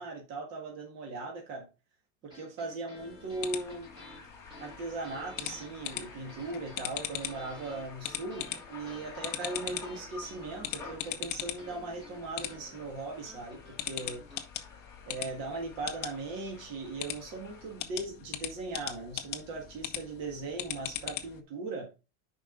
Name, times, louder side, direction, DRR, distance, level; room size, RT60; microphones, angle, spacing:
voice 1, 0.0-1.7 2.2-3.9 4.6-14.2 15.1-21.9, right 3 dB, 45° right, 1.9 m, -39 dB
sound 1, 2.2-14.4, equal, 10° right, 1.7 m, -52 dB
sound 2, 3.0-21.4, left 12 dB, 30° left, 0.6 m, -41 dB
sound 3, 3.4-17.8, left 3 dB, 10° left, 2.0 m, -51 dB
7.0 x 5.1 x 3.9 m
cardioid pair, 180°, 36 cm